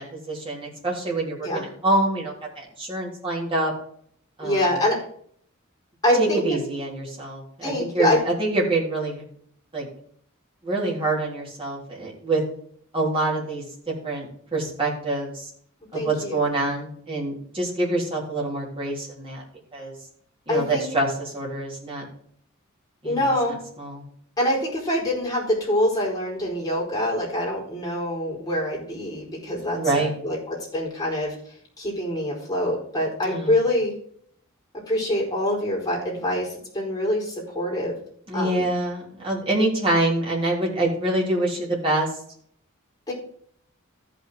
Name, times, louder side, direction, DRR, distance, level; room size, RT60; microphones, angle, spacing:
voice 1, 0.0-3.7 4.4-4.8 6.2-9.2 9.7-9.9 10.6-12.4 12.9-13.6 14.0-15.5 15.9-19.4 19.7-19.9 20.5-22.0 23.0-24.0 29.7-30.1 33.2-33.5 38.3-42.2, right 2 dB, 25° right, -4 dB, 3.5 m, -26 dB
voice 2, 4.4-5.0 6.0-6.4 7.6-8.2 15.9-16.4 20.5-20.9 23.0-23.5 24.4-31.3 31.8-33.9 34.9-36.5 36.7-38.0 38.3-38.7 43.1-43.2, left 1 dB, 20° left, -3 dB, 4.4 m, -25 dB
14.5 x 6.0 x 3.8 m, 0.62 s
head